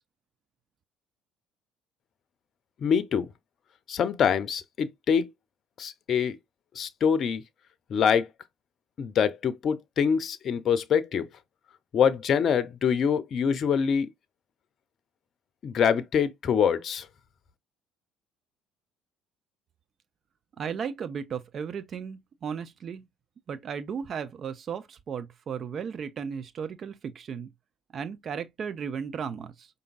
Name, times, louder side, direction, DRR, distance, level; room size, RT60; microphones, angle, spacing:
voice 1, 2.8-3.3 3.9-5.3 5.8-6.4 6.8-7.4 7.9-8.3 9.0-11.3 11.9-14.1 15.6-17.1, left 7 dB, 50° left, 0.6 m, -25 dB
voice 2, 20.6-23.0 23.5-27.5 27.9-29.7, right 7 dB, 45° right, 0.5 m, -35 dB
5.0 x 2.7 x 2.4 m
hypercardioid pair, 60°, 0 cm